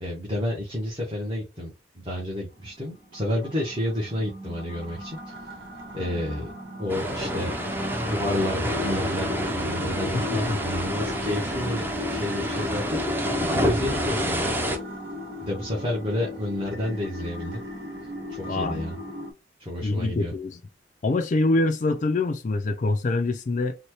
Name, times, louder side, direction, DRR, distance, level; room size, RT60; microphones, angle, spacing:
voice 1, 0.0-5.4 5.9-6.5 6.8-7.5 7.9-13.0 13.5-14.6 15.4-17.6 18.3-19.0 19.6-20.3, left 1 dB, 30° right, 1.0 m, -30 dB
sound 1, 2.6-19.3, left 1 dB, 85° right, 1.1 m, -37 dB
sound 2, 6.9-14.8, equal, 10° right, 0.6 m, -28 dB
voice 2, 10.1-10.6 18.5-18.8 19.8-20.6 21.0-23.8, left 2 dB, 45° left, 0.4 m, -25 dB
4.1 x 2.2 x 3.0 m
head